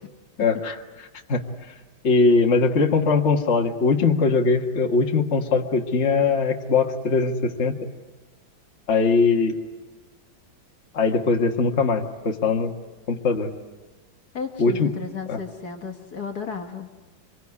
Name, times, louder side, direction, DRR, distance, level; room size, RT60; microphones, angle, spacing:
voice 1, 0.4-0.8 1.3-1.4 2.0-7.7 8.9-9.6 10.9-12.7 13.1-13.5 14.6-14.9 15.3-15.4, left 4 dB, 35° left, 2 dB, 1.7 m, -21 dB
voice 2, 14.3-16.9, left 5 dB, 55° left, 4 dB, 2.0 m, -33 dB
25.0 x 23.0 x 9.7 m, 1.2 s
omnidirectional pair, 2.2 m